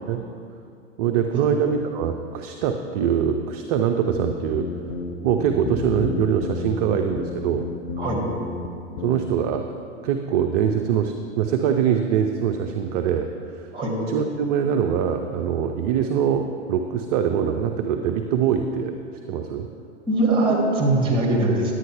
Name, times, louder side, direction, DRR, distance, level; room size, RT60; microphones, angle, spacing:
voice 1, 1.0-4.7 5.2-7.7 9.0-9.8 10.0-13.7 14.1-18.9 19.3-19.7, right 8 dB, 35° right, 5 dB, 0.4 m, -23 dB
sound 1, 4.2-8.7 9.0-9.2, left 4 dB, 50° left, 0.9 m, -32 dB
voice 2, 20.1-21.7, right 2 dB, 15° right, -1 dB, 2.1 m, -21 dB
10.5 x 8.6 x 3.5 m, 2.5 s
figure-of-eight pair, 100°, 36 cm